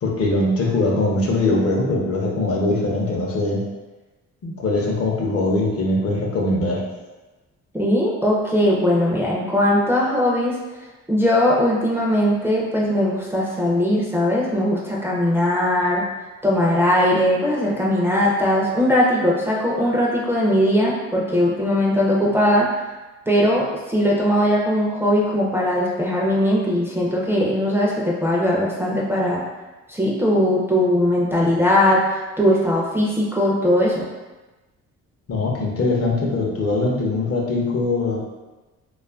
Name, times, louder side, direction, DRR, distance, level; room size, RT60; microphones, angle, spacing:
voice 1, 0.0-3.7 4.4-6.8 35.3-38.3, left 2 dB, 50° left, -2 dB, 0.6 m, -21 dB
voice 2, 7.7-10.6 11.1-16.0 16.4-22.7 23.3-29.4 29.9-34.1, left 1 dB, 10° right, -5 dB, 0.4 m, -19 dB
2.5 x 2.3 x 2.3 m, 1.1 s
cardioid pair, 90°, 30 cm